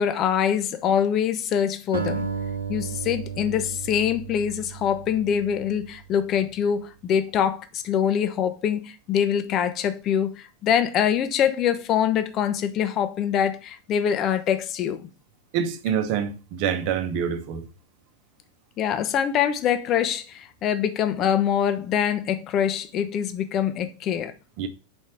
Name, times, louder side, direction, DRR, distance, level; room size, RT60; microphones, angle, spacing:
voice 1, 0.0-2.3 2.7-15.1 18.8-24.3, left 8 dB, 35° left, 0.8 m, -24 dB
Acoustic guitar, 1.9-6.4, right 6 dB, 75° right, 0.8 m, -33 dB
voice 2, 15.5-17.7 24.6-24.7, right 8 dB, 45° right, 0.9 m, -26 dB
5.4 x 4.2 x 5.9 m
figure-of-eight pair, 90°, 0 cm